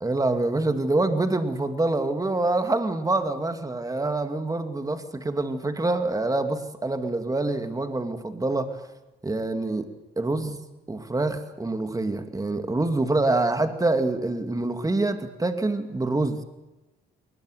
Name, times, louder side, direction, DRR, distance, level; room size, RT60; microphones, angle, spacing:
voice 1, 0.0-8.8 9.2-9.9 10.2-16.4, right 2 dB, 15° right, 8 dB, 2.5 m, -26 dB
21.0 x 20.0 x 9.3 m, 1.0 s
cardioid pair, 90°, 20 cm